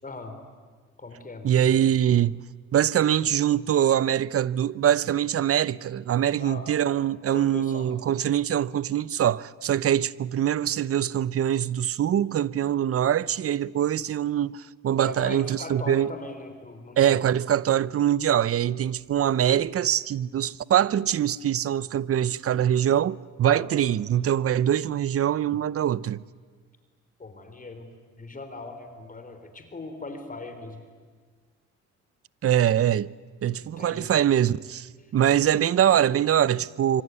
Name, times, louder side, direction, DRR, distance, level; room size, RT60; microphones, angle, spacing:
voice 1, 0.0-0.4 1.0-1.8 6.4-7.0 7.3-7.9 15.0-17.2 23.4-23.7 27.2-27.9 28.2-30.8 33.8-34.1 35.0-35.1, left 3 dB, 25° left, 3.9 m, -39 dB
voice 2, 1.4-2.4 2.7-16.1 17.0-26.2 32.4-33.1 33.4-37.0, right 10 dB, 50° right, 0.7 m, -23 dB
25.5 x 24.5 x 9.6 m
cardioid pair, 90°, 30 cm